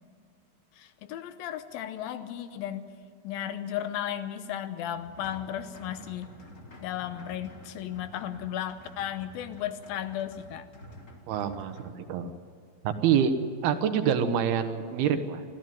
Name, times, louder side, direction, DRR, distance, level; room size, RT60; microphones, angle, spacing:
voice 1, 0.7-2.9 3.2-6.3 6.8-10.7, left 10 dB, 75° left, 11 dB, 2.6 m, -35 dB
sound 1, 4.8-11.9, left 1 dB, 30° left, 1.4 m, -50 dB
voice 2, 11.3-12.3 12.8-13.3 13.6-15.4, right 8 dB, 80° right, 8 dB, 3.1 m, -26 dB
25.0 x 14.5 x 9.3 m, 2.2 s
omnidirectional pair, 4.4 m